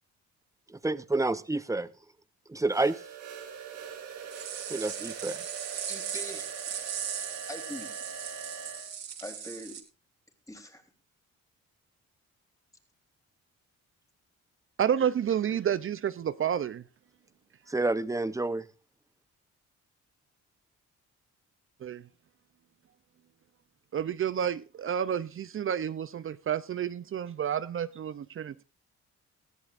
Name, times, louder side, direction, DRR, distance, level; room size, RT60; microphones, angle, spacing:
voice 1, 0.8-1.9 2.5-3.0 4.7-5.4 17.7-18.7, right 2 dB, 10° right, 0.8 m, -29 dB
sound 1, 2.7-8.9, right 6 dB, 85° right, 5.1 m, -42 dB
sound 2, 4.3-9.8, right 8 dB, 60° right, 3.3 m, -38 dB
voice 2, 5.9-6.5 7.5-8.0 9.2-9.8 10.5-10.8, left 1 dB, 10° left, 3.5 m, -42 dB
voice 3, 14.8-16.8 21.8-22.0 23.9-28.6, right 9 dB, 45° right, 0.6 m, -30 dB
19.0 x 14.0 x 2.5 m
cardioid pair, 90°, 30 cm